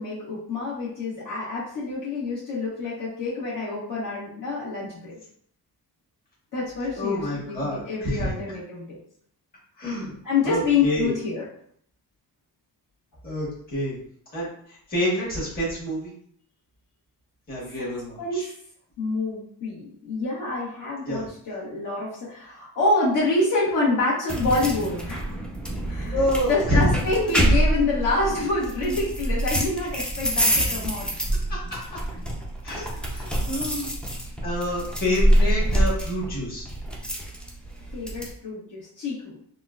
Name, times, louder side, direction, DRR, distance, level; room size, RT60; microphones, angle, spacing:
voice 1, 0.0-5.2 6.5-8.9 10.2-11.4 17.8-17.9 18.2-18.5 19.0-25.3 25.9-26.2 26.5-31.1 32.7-33.0 37.9-39.4, left 3 dB, 55° left, -8 dB, 1.1 m, -27 dB
voice 2, 6.9-8.3 9.8-10.1 10.4-11.1 13.2-13.9 14.3-16.1 17.5-18.5 21.0-21.3 26.1-26.9 30.5-30.6 31.5-32.0 32.6-32.8 33.1-33.9 34.4-36.6, left 1 dB, 25° left, -8 dB, 1.3 m, -27 dB
sound 1, 24.3-38.3, right 1 dB, 5° left, 0.3 m, -26 dB
3.7 x 2.1 x 2.4 m, 0.63 s
wide cardioid pair, 170°, 38 cm